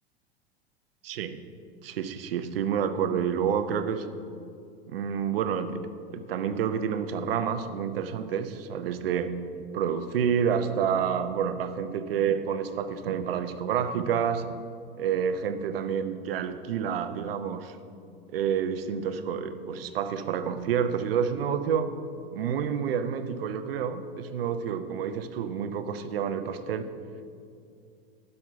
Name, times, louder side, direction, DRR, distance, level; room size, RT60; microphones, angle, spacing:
voice 1, 1.0-1.4 1.8-4.1 4.9-5.8 6.1-14.5 15.0-17.8 18.3-21.9 22.3-26.9, right 7 dB, 65° right, 10 dB, 0.7 m, -29 dB
11.5 x 5.7 x 5.6 m, 2.4 s
figure-of-eight pair, 90°, 31 cm